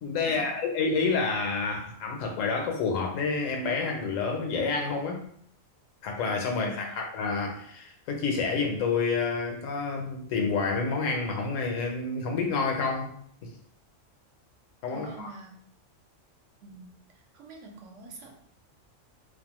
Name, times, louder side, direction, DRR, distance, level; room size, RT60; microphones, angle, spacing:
voice 1, 0.0-5.2 6.0-13.1 13.4-13.5 14.8-15.3, left 4 dB, 80° left, 2 dB, 1.0 m, -29 dB
voice 2, 6.5-7.0 14.9-15.6 16.6-16.9 17.3-18.3, right 2 dB, 75° right, 1 dB, 0.9 m, -45 dB
2.6 x 2.1 x 2.9 m, 0.63 s
omnidirectional pair, 1.3 m